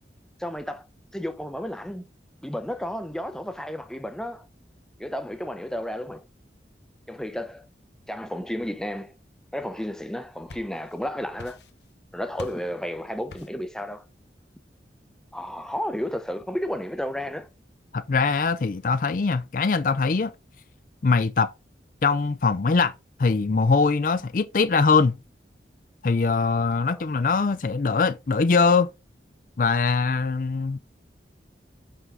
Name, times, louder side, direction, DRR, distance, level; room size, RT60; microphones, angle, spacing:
voice 1, 0.4-0.9 1.1-2.0 2.4-4.5 5.0-6.2 7.1-7.6 8.1-9.1 9.5-11.6 12.1-14.1 15.3-17.5 26.8-27.0, equal, 5° left, 0.6 m, -32 dB
sound 1, 10.3-11.0 11.4-12.0 12.4-12.7 13.3-13.7, left 2 dB, 80° left, 1.2 m, -44 dB
voice 2, 17.9-20.3 21.0-21.5 22.0-22.9 23.2-25.2 26.0-28.9 29.6-30.8, left 4 dB, 50° left, 0.4 m, -22 dB
6.1 x 5.7 x 3.7 m
head